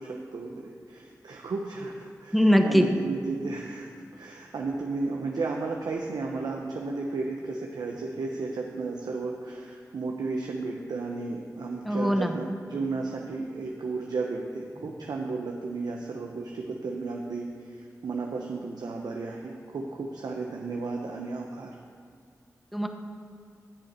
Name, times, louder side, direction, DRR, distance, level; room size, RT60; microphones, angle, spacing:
voice 1, 0.0-21.7, right 3 dB, 85° right, 0 dB, 0.8 m, -34 dB
voice 2, 2.3-2.9 11.8-12.4 22.7-22.9, equal, ahead, 5 dB, 1.0 m, -21 dB
14.0 x 6.6 x 4.3 m, 2.2 s
cardioid pair, 45°, 7 cm